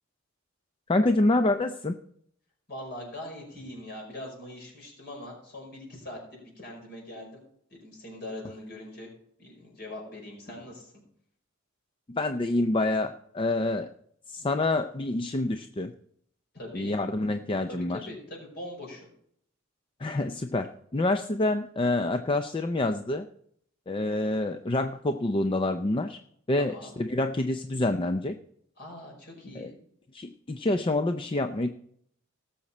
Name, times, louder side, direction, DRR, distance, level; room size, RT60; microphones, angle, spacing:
voice 1, 0.9-2.0 12.1-13.9 14.3-15.9 16.7-18.0 20.0-23.3 23.9-26.2 26.5-28.3 29.6-29.7 30.1-31.7, left 2 dB, 25° left, 8 dB, 0.5 m, -27 dB
voice 2, 2.7-7.4 7.7-9.1 9.4-11.0 16.5-17.0 17.7-19.1 26.6-26.9 28.8-29.7, left 1 dB, 50° left, 0 dB, 5.4 m, -42 dB
18.0 x 7.2 x 4.2 m, 0.67 s
head